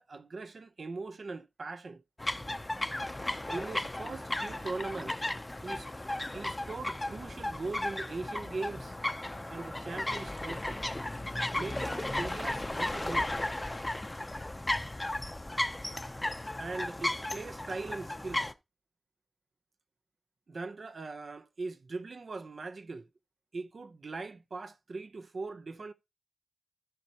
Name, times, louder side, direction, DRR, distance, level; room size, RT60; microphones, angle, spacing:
voice 1, 0.0-2.0 3.5-5.2 5.6-5.9 6.3-8.9 9.5-10.8 11.5-13.3 16.5-18.5 20.5-23.1 23.5-25.9, right 3 dB, 75° right, 0.7 m, -40 dB
sound 1, 2.2-18.5, left 1 dB, 20° left, 0.6 m, -35 dB
14.0 x 5.5 x 2.9 m
wide cardioid pair, 90°, 0 cm